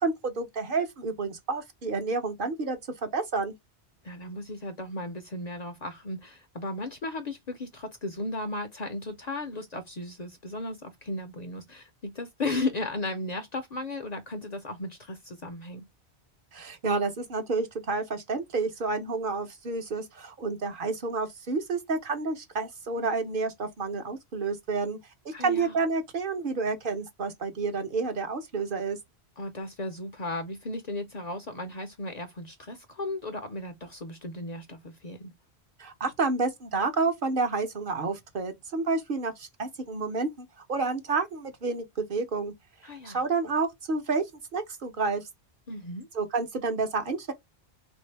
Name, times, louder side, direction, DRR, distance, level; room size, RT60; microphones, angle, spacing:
voice 1, 0.0-3.5 16.5-25.0 25.2-29.0 35.8-42.5 43.0-44.2 44.5-45.2 46.1-47.3, right 4 dB, 55° right, 0.9 m, -29 dB
voice 2, 4.0-15.8 25.3-25.8 29.4-35.3 42.8-43.2 45.7-46.1, left 2 dB, 50° left, 0.6 m, -35 dB
3.3 x 2.6 x 3.2 m
omnidirectional pair, 1.1 m